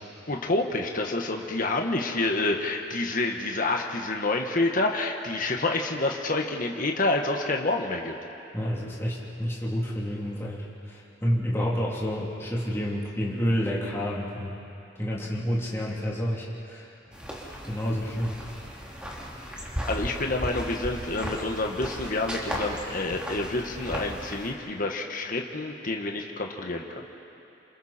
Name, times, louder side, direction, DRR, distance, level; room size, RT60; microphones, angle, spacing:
voice 1, 0.3-8.1 19.5-26.9, left 2 dB, 45° left, 2 dB, 1.5 m, -28 dB
voice 2, 8.5-14.6 14.9-16.9 17.6-18.5, equal, 15° left, -6 dB, 3.2 m, -29 dB
sound 1, 17.1-24.5, equal, 5° right, 2.9 m, -36 dB
28.5 x 27.0 x 4.4 m, 2.8 s
head